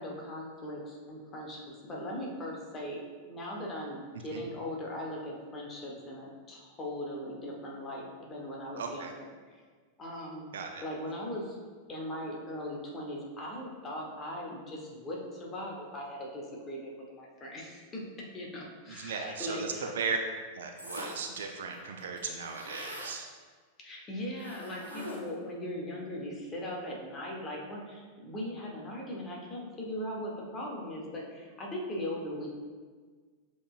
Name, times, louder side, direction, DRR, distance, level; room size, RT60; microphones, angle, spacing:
voice 1, 0.0-3.0 3.3-9.1 10.0-10.5 10.8-11.6 11.9-18.0 18.3-19.8 23.8-32.5, left 1 dB, 25° left, -2 dB, 1.1 m, -39 dB
voice 2, 8.8-9.1 10.5-10.8 18.9-20.2 20.5-23.3, right 5 dB, 60° right, 3 dB, 0.4 m, -36 dB
sound 1, 20.8-21.4 21.7-21.8 22.0-23.2 24.4-25.4, left 1 dB, 90° right, 0.9 m, -42 dB
7.2 x 3.1 x 2.4 m, 1.5 s
figure-of-eight pair, 90°, 0 cm